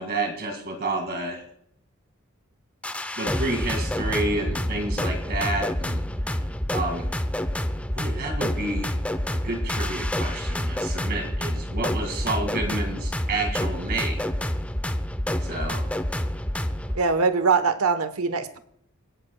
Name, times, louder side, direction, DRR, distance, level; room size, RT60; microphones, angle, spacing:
voice 1, 0.0-1.4 3.2-6.0 6.7-7.1 7.9-8.9 9.4-14.3 15.4-15.9, right 2 dB, 45° right, 3 dB, 2.1 m, -30 dB
sound 1, 2.8-17.0, left 1 dB, 5° left, 0.6 m, -28 dB
voice 2, 16.9-18.6, right 4 dB, 80° right, 11 dB, 1.0 m, -22 dB
26.5 x 11.0 x 2.3 m, 0.70 s
head